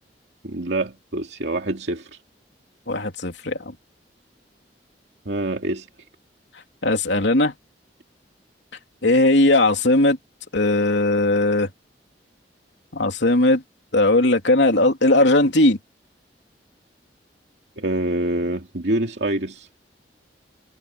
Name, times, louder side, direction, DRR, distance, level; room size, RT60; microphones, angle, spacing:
voice 1, 0.4-2.2 5.3-5.9 17.8-19.7, right 1 dB, 75° right, 2.6 m, -26 dB
voice 2, 2.9-3.7 6.8-7.5 9.0-10.2 10.5-11.7 12.9-13.6 13.9-15.8, left 2 dB, 85° left, 3.0 m, -18 dB
head